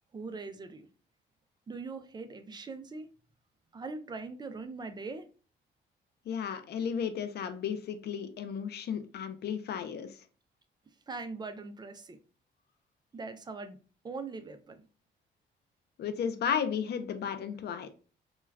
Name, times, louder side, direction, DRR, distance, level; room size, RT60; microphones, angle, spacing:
voice 1, 0.1-0.9 1.7-3.1 3.7-5.3 11.1-12.2 13.1-13.8 14.0-14.8, right 3 dB, 20° right, 0.4 m, -41 dB
voice 2, 6.3-10.1 16.0-17.9, left 7 dB, 55° left, 0.5 m, -34 dB
2.2 x 2.2 x 3.2 m
cardioid pair, 90°, 20 cm